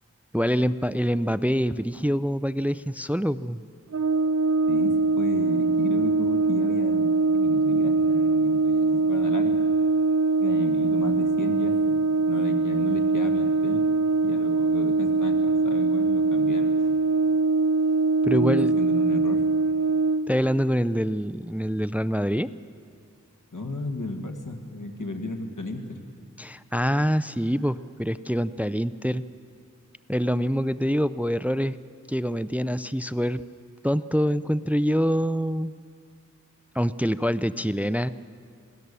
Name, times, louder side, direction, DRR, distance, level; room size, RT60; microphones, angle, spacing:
voice 1, 0.3-3.6 18.2-18.7 20.3-22.5 26.4-29.2 30.1-31.7 32.1-33.4 33.8-35.7 36.7-38.1, equal, 5° right, 15 dB, 0.4 m, -25 dB
Brass instrument, 3.9-20.3, right 3 dB, 55° right, 0.5 m, -22 dB
voice 2, 4.7-9.6 10.4-13.8 14.2-16.9 18.3-19.4 23.5-26.0, left 2 dB, 85° left, 4 dB, 2.0 m, -34 dB
26.5 x 18.0 x 6.9 m, 2.4 s
wide cardioid pair, 40°, 30 cm